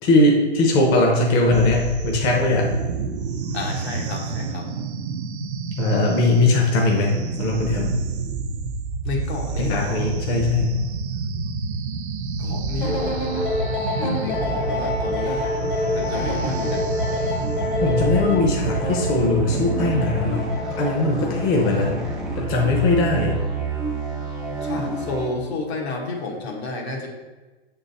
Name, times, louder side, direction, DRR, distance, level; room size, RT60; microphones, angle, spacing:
voice 1, 0.0-2.7 5.8-7.9 9.6-10.8 17.8-20.5 20.8-22.0 22.4-23.4, left 2 dB, 30° left, -1 dB, 0.8 m, -20 dB
sound 1, 1.5-20.1, right 4 dB, 80° right, 0.8 m, -29 dB
voice 2, 3.5-4.7 9.0-10.1 12.4-13.4 13.9-15.4 15.9-16.9 24.6-27.1, left 3 dB, 75° left, -1 dB, 1.6 m, -30 dB
sound 2, 12.8-22.2, left 2 dB, 55° left, 1.5 m, -28 dB
sound 3, 14.0-25.3, right 4 dB, ahead, 0.4 m, -31 dB
6.4 x 3.9 x 4.1 m, 1.2 s
hypercardioid pair, 140°, 33 cm